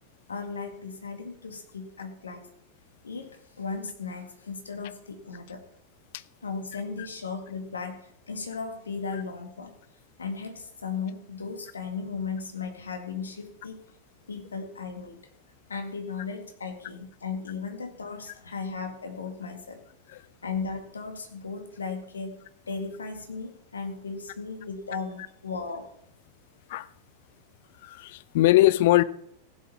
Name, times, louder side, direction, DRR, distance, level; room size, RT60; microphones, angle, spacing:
voice 1, 0.3-2.5 3.0-5.6 6.4-9.7 10.2-13.8 14.3-15.2 15.7-19.8 20.4-22.4 22.7-25.9, left 5 dB, 75° left, 5 dB, 1.9 m, -36 dB
voice 2, 27.8-29.0, left 16 dB, 50° left, 17 dB, 0.5 m, -21 dB
16.0 x 7.6 x 5.6 m, 0.71 s
figure-of-eight pair, 90°, 0 cm